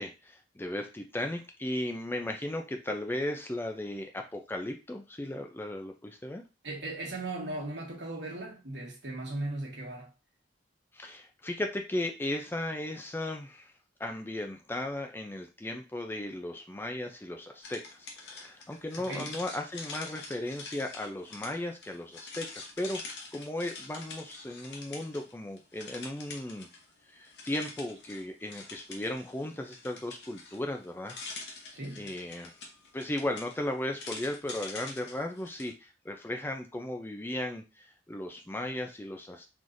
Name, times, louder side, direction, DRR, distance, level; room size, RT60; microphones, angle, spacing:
voice 1, 0.0-6.4 10.9-13.7 14.0-26.7 27.1-31.2 31.6-32.5 32.9-39.5, left 1 dB, 10° left, 0.4 m, -36 dB
voice 2, 6.6-10.1 19.0-19.3 31.7-32.1, right 2 dB, 75° right, 1.3 m, -37 dB
sound 1, 17.6-25.3 25.6-26.9 27.2-35.7, left 3 dB, 65° left, 0.9 m, -45 dB
3.9 x 3.1 x 2.5 m
head